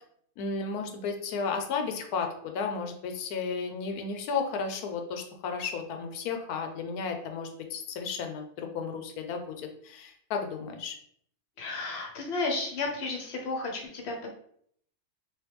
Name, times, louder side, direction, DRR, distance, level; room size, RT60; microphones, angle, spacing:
voice 1, 0.4-10.9, left 5 dB, 85° left, 5 dB, 1.1 m, -33 dB
voice 2, 11.6-14.3, left 3 dB, 50° left, 1 dB, 0.9 m, -33 dB
3.1 x 3.0 x 3.3 m, 0.64 s
omnidirectional pair, 1.6 m